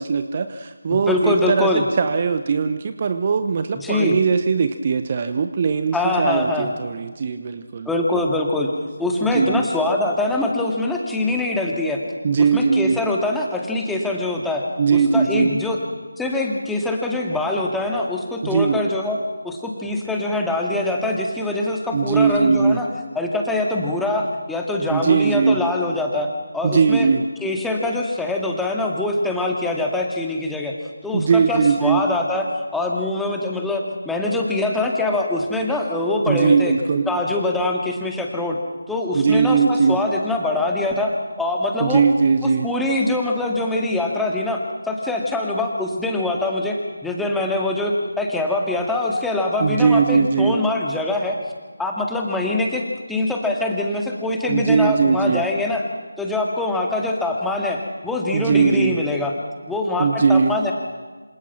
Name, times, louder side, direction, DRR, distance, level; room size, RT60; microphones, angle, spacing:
voice 1, 0.0-7.9 9.2-9.7 12.2-13.1 14.8-15.6 18.4-18.8 21.9-22.9 24.9-25.7 26.6-27.3 31.1-32.0 36.3-37.1 39.1-40.1 41.8-42.7 49.6-50.6 54.5-55.4 58.3-59.0 60.0-60.6, right 5 dB, 30° right, 10 dB, 1.0 m, -19 dB
voice 2, 1.1-1.8 3.8-4.2 5.9-6.7 7.9-8.7 9.0-12.0 12.4-14.6 14.9-15.8 16.2-19.2 19.4-22.9 23.2-26.3 26.5-27.1 27.4-30.7 31.0-36.7 37.1-38.6 38.9-41.1 41.4-42.0 42.4-51.4 51.8-55.8 56.2-59.3 59.7-60.7, left 2 dB, 5° left, 0 dB, 2.2 m, -23 dB
27.0 x 27.0 x 5.9 m, 1.4 s
figure-of-eight pair, 160°, 0 cm